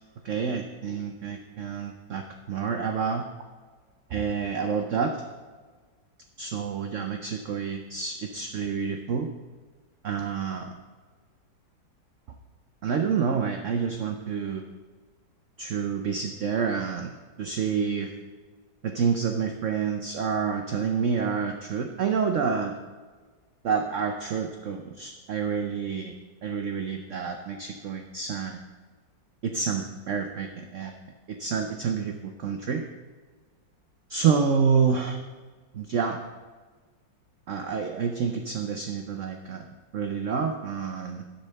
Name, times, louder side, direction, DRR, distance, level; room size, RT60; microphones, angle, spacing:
voice 1, 0.2-3.2 4.1-5.2 6.4-9.3 10.0-10.7 12.8-14.7 15.6-17.1 17.4-18.1 18.8-22.7 23.6-26.1 26.4-28.6 29.4-31.0 31.3-32.8 34.1-35.2 35.7-36.2 37.5-39.6 39.9-41.2, right 6 dB, 85° right, 5 dB, 0.6 m, -28 dB
10.0 x 4.3 x 6.6 m, 1.4 s
omnidirectional pair, 2.0 m